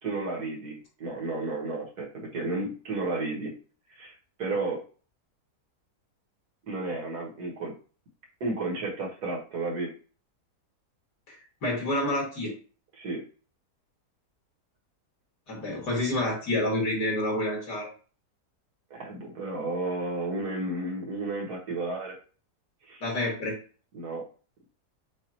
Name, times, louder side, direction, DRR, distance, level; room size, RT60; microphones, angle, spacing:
voice 1, 0.0-3.5 4.0-4.8 6.6-7.7 8.4-9.9 13.0-13.2 18.9-22.2 22.9-23.0 23.9-24.2, right 2 dB, 70° right, -1 dB, 1.9 m, -32 dB
voice 2, 11.6-12.5 15.5-17.9 23.0-23.6, left 1 dB, 80° left, -3 dB, 2.8 m, -28 dB
7.2 x 2.5 x 2.9 m, 0.38 s
omnidirectional pair, 1.7 m